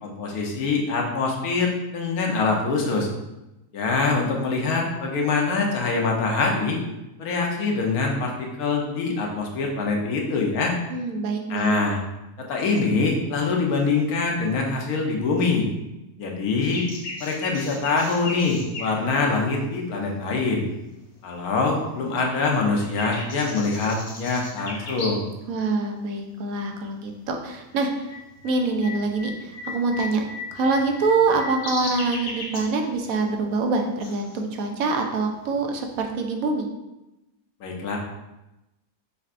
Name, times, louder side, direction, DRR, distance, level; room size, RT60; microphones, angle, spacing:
voice 1, 0.0-3.1 3.7-6.8 7.2-10.7 11.5-12.0 12.4-15.7 16.2-16.9 17.2-20.6 21.2-25.2 37.6-38.0, left 3 dB, 85° left, 0 dB, 1.3 m, -24 dB
voice 2, 10.9-11.7 25.5-28.1 28.4-30.2 30.5-36.7, right 3 dB, 75° right, 3 dB, 1.0 m, -25 dB
sound 1, 16.6-20.6 21.1-21.9 22.2-25.4 25.7-25.8 26.5-26.8 27.1-36.1, left 3 dB, 55° left, 1.0 m, -37 dB
5.5 x 3.4 x 2.5 m, 0.97 s
omnidirectional pair, 1.5 m